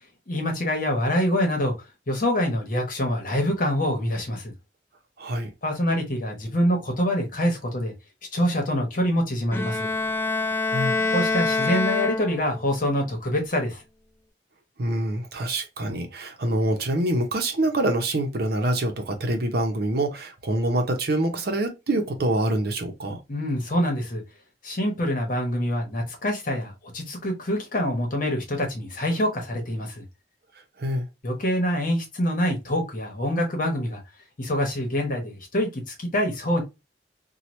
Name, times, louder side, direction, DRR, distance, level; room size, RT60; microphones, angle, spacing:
voice 1, 0.3-1.7 2.1-4.5 5.6-7.9 8.3-9.9 11.1-13.8 23.3-24.2 24.6-30.0 31.2-34.0 34.4-36.6, equal, 50° left, 1.1 m, -25 dB
voice 2, 5.2-5.5 10.7-11.0 14.8-23.2 30.8-31.0, right 1 dB, 60° right, 0.7 m, -25 dB
Bowed string instrument, 9.5-12.7, left 3 dB, 15° left, 0.3 m, -25 dB
2.9 x 2.3 x 3.1 m
head